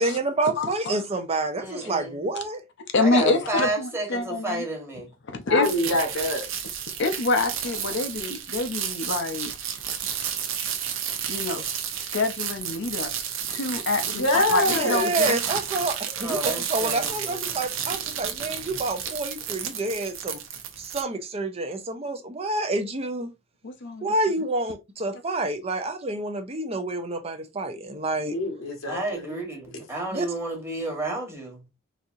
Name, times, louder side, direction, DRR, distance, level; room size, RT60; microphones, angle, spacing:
voice 1, 0.0-2.6 14.7-20.4 20.8-23.3 24.0-28.3 30.1-30.3, right 2 dB, 30° right, 0.5 m, -28 dB
voice 2, 0.6-1.0 2.9-4.6 5.3-5.7 7.0-9.5 11.3-11.7 12.1-13.1 13.5-15.4 23.6-24.1, left 3 dB, 60° left, 0.6 m, -26 dB
voice 3, 1.6-2.2 3.0-5.1 16.2-17.4 28.9-31.7, right 2 dB, 15° right, 1.2 m, -31 dB
voice 4, 5.5-6.5 14.1-15.1 28.2-29.4, left 1 dB, 90° left, 1.1 m, -25 dB
sound 1, 5.6-21.0, right 8 dB, 70° right, 0.7 m, -31 dB
4.1 x 2.7 x 2.5 m
head